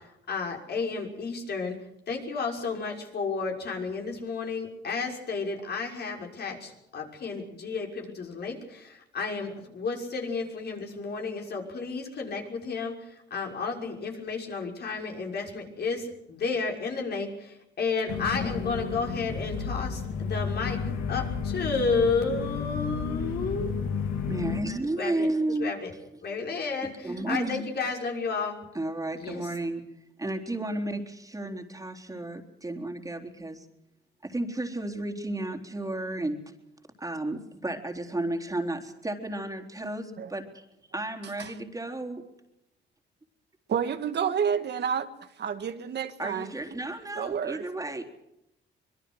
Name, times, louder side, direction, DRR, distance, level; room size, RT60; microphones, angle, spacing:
voice 1, 0.0-1.8 2.1-23.8 25.0-25.3 25.6-25.9 26.2-28.6 29.2-29.5, left 4 dB, 55° left, 6.1 m, -32 dB
sound 1, 18.1-24.6, left 5 dB, 85° left, 3.2 m, -32 dB
voice 2, 24.3-25.7 27.0-27.7 28.7-29.8 30.2-33.7 34.2-36.4 37.0-40.6 40.9-42.2 46.2-48.1, right 2 dB, 15° right, 3.7 m, -32 dB
voice 3, 43.7-45.1 45.4-46.5 47.2-47.7, right 7 dB, 60° right, 1.9 m, -29 dB
25.0 x 22.0 x 6.4 m
cardioid pair, 90°, 20 cm